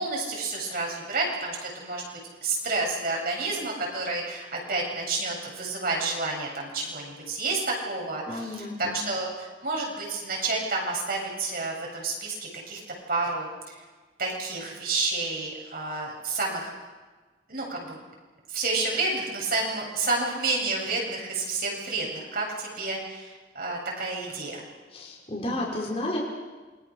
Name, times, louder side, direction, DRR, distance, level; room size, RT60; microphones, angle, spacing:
voice 1, 0.0-12.8 13.1-13.8 14.2-16.7 17.5-18.0 18.5-24.6, right 3 dB, 55° right, -1 dB, 7.9 m, -30 dB
voice 2, 8.3-9.0 24.9-26.2, left 1 dB, 35° left, -3 dB, 5.8 m, -32 dB
28.0 x 24.0 x 6.6 m, 1.3 s
head